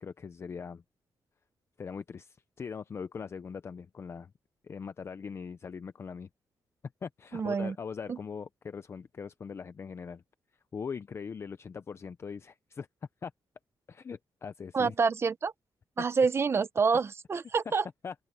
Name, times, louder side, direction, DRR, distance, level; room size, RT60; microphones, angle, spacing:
voice 1, 0.0-0.8 1.8-4.3 4.6-6.3 7.0-10.2 10.7-12.9 13.2-13.3 13.9-14.9 18.0-18.1, left 6 dB, 30° left, 0.5 m, -41 dB
voice 2, 7.3-7.7 8.1-8.2 14.7-15.5 16.0-17.8, right 5 dB, 30° right, 0.7 m, -27 dB
open air
wide cardioid pair, 165°, 8 cm